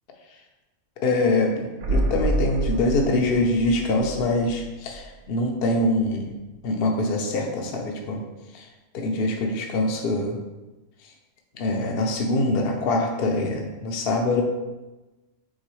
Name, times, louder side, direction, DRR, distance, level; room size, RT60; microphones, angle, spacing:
voice 1, 1.0-6.3 6.6-8.2 8.5-8.7 8.9-10.4 11.5-14.4, left 2 dB, 55° left, 2 dB, 0.8 m, -24 dB
sound 1, 1.8-5.6 5.8-5.9, right 2 dB, 70° right, 0.9 m, -28 dB
4.7 x 3.7 x 3.0 m, 1.1 s
omnidirectional pair, 1.3 m